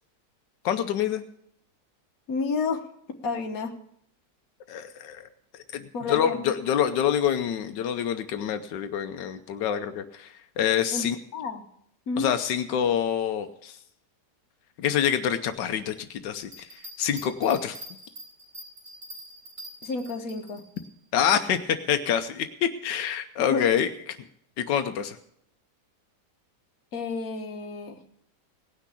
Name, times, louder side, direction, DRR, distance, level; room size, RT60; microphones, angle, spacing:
voice 1, 0.6-1.2 4.7-5.3 5.7-11.2 12.2-13.8 14.8-16.7 17.0-17.8 21.1-24.2 24.6-25.2, left 9 dB, 85° left, 8 dB, 1.4 m, -26 dB
voice 2, 2.3-2.8 3.2-3.7 5.9-6.5 10.9-11.1 11.3-11.6 12.1-12.3 19.8-20.6 23.4-23.6 26.9-28.0, left 4 dB, 55° left, 5 dB, 1.6 m, -30 dB
sound 1, 16.4-20.9, equal, 40° right, 4.5 m, -44 dB
18.0 x 6.0 x 8.3 m, 0.72 s
omnidirectional pair, 1.9 m